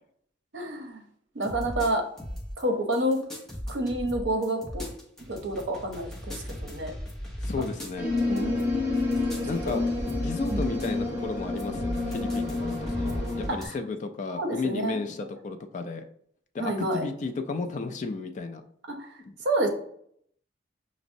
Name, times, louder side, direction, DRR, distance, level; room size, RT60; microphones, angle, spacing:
voice 1, 0.5-1.0 1.3-2.0 2.6-3.2 3.7-4.9 5.3-6.9 8.3-8.7 9.7-9.8 10.5-10.7 13.6-13.7 14.4-15.0 16.6-17.1 18.9-19.1 19.4-19.7, right 1 dB, 70° right, 4 dB, 0.6 m, -29 dB
sound 1, 1.4-2.6 2.9-10.9 11.2-13.7, equal, ahead, 0.6 m, -37 dB
voice 2, 7.4-8.1 9.4-9.8 10.2-16.0 16.5-18.6 19.2-19.3, left 3 dB, 40° left, 7 dB, 0.3 m, -33 dB
sound 2, 7.9-13.5, left 3 dB, 15° right, 1.5 m, -29 dB
5.9 x 2.0 x 2.6 m, 0.66 s
head